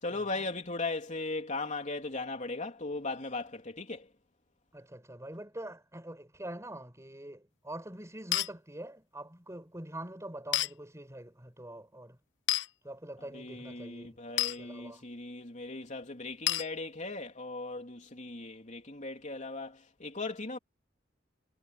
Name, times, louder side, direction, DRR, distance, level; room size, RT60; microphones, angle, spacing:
voice 1, 0.0-4.1 13.3-20.6, left 3 dB, 40° left, 3.5 m, -38 dB
voice 2, 4.7-12.2 12.8-15.1, right 1 dB, 15° right, 7.1 m, -45 dB
sound 1, 8.3-8.5 10.5-10.7 12.5-12.7 14.4-14.6 16.5-16.7, left 14 dB, 75° left, 1.0 m, -28 dB
head